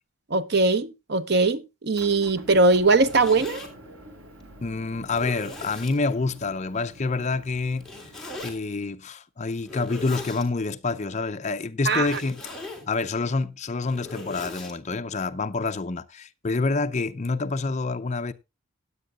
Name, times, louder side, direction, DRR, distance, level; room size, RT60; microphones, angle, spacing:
voice 1, 0.3-3.6 11.9-12.2, right 3 dB, 50° right, 0.8 m, -21 dB
Motor vehicle (road) / Engine, 1.9-8.4, right 1 dB, 80° right, 3.4 m, -46 dB
Zipper (clothing), 2.8-3.7 4.4-4.5 5.1-6.0 7.8-8.5 9.6-10.5 11.9-12.9 13.6-14.7, left 2 dB, ahead, 3.2 m, -39 dB
voice 2, 4.6-7.8 8.4-12.4 12.9-18.3, left 3 dB, 35° left, 0.6 m, -27 dB
16.5 x 10.0 x 2.4 m
head